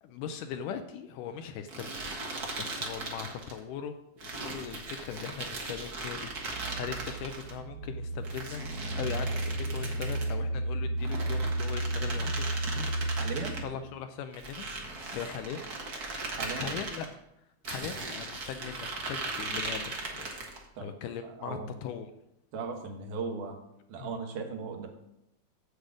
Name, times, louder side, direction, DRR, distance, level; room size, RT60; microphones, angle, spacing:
voice 1, 0.0-1.9 2.2-8.6 9.0-12.5 13.6-14.7 15.1-15.7 16.6-17.2 17.7-20.3 20.8-22.1 24.0-24.1, left 8 dB, 80° left, 8 dB, 2.0 m, -40 dB
sound 1, 1.7-3.6 4.2-7.5 8.2-10.4 11.0-13.6 14.3-17.1 17.6-20.6, right 3 dB, 45° right, 1.2 m, -38 dB
sound 2, 6.1-13.9, right 1 dB, 40° left, 1.2 m, -33 dB
voice 2, 13.2-13.6 16.3-16.7 20.8-20.9 21.2-21.7 22.5-23.6 23.9-24.9, right 5 dB, 70° right, 3 dB, 2.6 m, -37 dB
8.2 x 8.0 x 5.0 m, 0.83 s
omnidirectional pair, 4.0 m